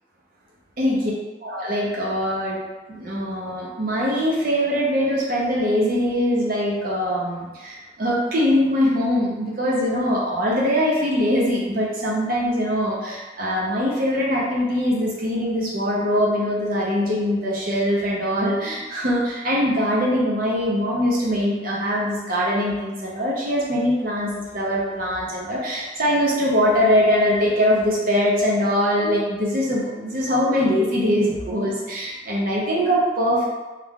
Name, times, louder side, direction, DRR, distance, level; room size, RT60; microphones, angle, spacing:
voice 1, 1.4-2.6 2.9-33.5, equal, 50° right, -5 dB, 0.7 m, -22 dB
3.2 x 2.3 x 3.6 m, 1.2 s
head